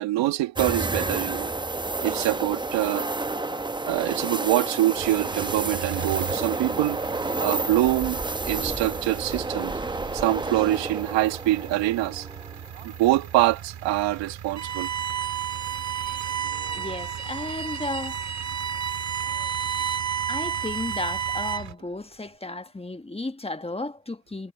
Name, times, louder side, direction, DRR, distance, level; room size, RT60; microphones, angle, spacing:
voice 1, 0.0-1.5 2.0-3.1 3.9-7.0 7.4-9.8 10.1-12.3 12.8-14.9, right 16 dB, 90° right, 1.9 m, -25 dB
sound 1, 0.6-13.6 14.0-14.1 16.5-16.9, right 2 dB, 10° right, 0.8 m, -30 dB
sound 2, 5.0-21.7, right 9 dB, 60° right, 2.3 m, -40 dB
Bowed string instrument, 14.6-21.8, right 8 dB, 40° right, 1.1 m, -30 dB
voice 2, 16.7-18.2 20.3-24.5, left 2 dB, 15° left, 1.4 m, -34 dB
supercardioid pair, 70°, 43 cm